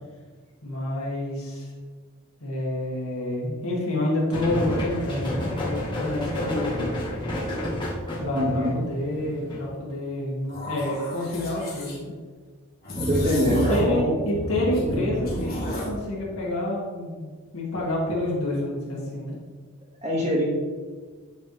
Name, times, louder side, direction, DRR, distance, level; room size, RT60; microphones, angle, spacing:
voice 1, 0.6-1.7 2.4-6.9 8.2-12.1 13.4-19.3, left 1 dB, 75° left, -4 dB, 2.1 m, -28 dB
sound 1, 4.3-9.7, left 1 dB, 20° left, 1.5 m, -30 dB
voice 2, 8.3-8.8 12.9-14.2 20.0-20.4, equal, 30° right, -5 dB, 1.9 m, -24 dB
sound 2, 10.5-12.0 12.8-14.0 14.3-16.0, equal, 45° left, 1.7 m, -30 dB
9.4 x 4.2 x 3.4 m, 1.5 s
head